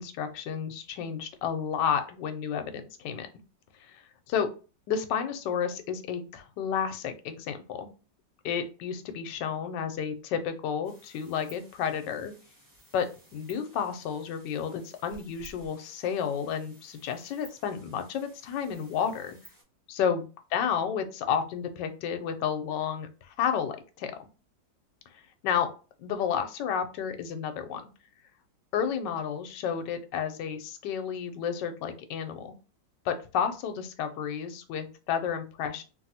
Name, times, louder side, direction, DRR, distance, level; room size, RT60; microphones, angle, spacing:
voice 1, 0.0-3.3 3.9-4.5 4.9-7.9 8.4-12.3 12.9-13.1 13.3-19.4 19.9-24.3 25.1-25.7 26.0-27.8 28.7-32.6 33.0-35.8, left 7 dB, 75° left, 8 dB, 1.2 m, -31 dB
sound 1, 10.8-19.6, right 1 dB, 15° right, 1.1 m, -56 dB
3.0 x 2.6 x 2.7 m, 0.34 s
omnidirectional pair, 2.0 m